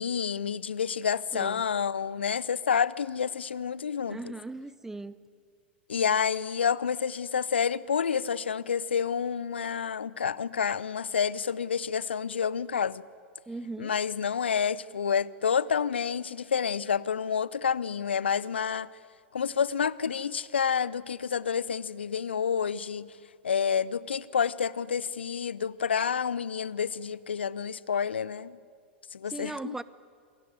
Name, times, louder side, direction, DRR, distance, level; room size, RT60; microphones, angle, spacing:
voice 1, 0.0-4.3 5.9-13.0 13.8-18.9 19.3-23.1 23.4-28.6 29.1-29.8, left 7 dB, 70° left, 0.7 m, -29 dB
voice 2, 1.3-1.6 4.1-5.2 13.5-13.9 29.3-29.8, right 2 dB, 5° right, 0.8 m, -38 dB
28.0 x 21.0 x 9.6 m
figure-of-eight pair, 95°, 6 cm